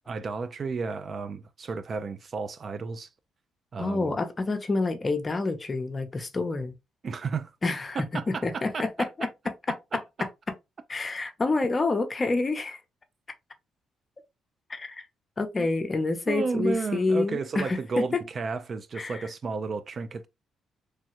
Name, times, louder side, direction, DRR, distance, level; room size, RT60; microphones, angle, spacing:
voice 1, 0.1-3.1 3.7-4.1 7.0-7.5 8.0-9.1 9.9-10.0 15.6-15.7 16.3-20.3, right 4 dB, 45° right, 0.3 m, -32 dB
voice 2, 3.8-6.7 7.6-9.3 9.7-10.3 10.9-12.8 14.7-15.1 15.4-18.0 19.0-19.2, left 3 dB, 30° left, 0.6 m, -28 dB
3.1 x 2.3 x 2.8 m
cardioid pair, 90°, 0 cm